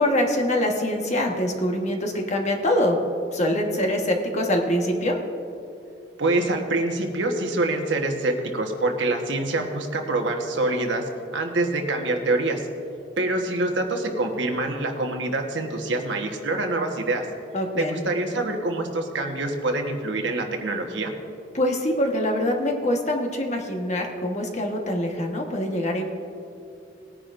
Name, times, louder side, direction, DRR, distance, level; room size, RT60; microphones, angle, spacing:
voice 1, 0.0-3.0 3.3-5.2 17.5-18.0 21.5-26.1, left 1 dB, 40° left, 2 dB, 1.3 m, -24 dB
voice 2, 6.2-11.0 11.3-12.7 13.2-17.2 17.8-21.1, right 2 dB, 85° right, 3 dB, 1.3 m, -25 dB
19.5 x 9.9 x 2.6 m, 2.7 s
head